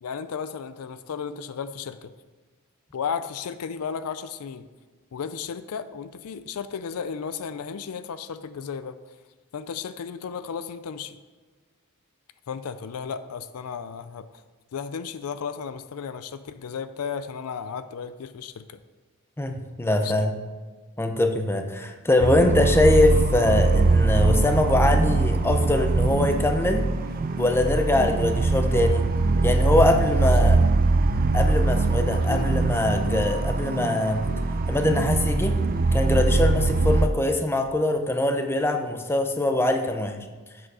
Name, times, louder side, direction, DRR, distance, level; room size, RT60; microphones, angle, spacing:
voice 1, 0.0-2.1 2.9-4.7 5.1-9.0 9.5-11.2 12.5-14.4 14.7-18.8 19.9-20.3 30.2-30.5 32.1-32.6, left 6 dB, 75° left, 12 dB, 0.4 m, -34 dB
voice 2, 19.4-20.3 21.0-26.9 27.4-29.1 29.4-30.6 31.3-34.2 34.7-35.6 35.9-40.2, left 1 dB, 10° left, 5 dB, 0.6 m, -23 dB
sound 1, 22.2-37.1, right 3 dB, 40° right, 0.4 m, -22 dB
7.7 x 6.2 x 4.8 m, 1.4 s
head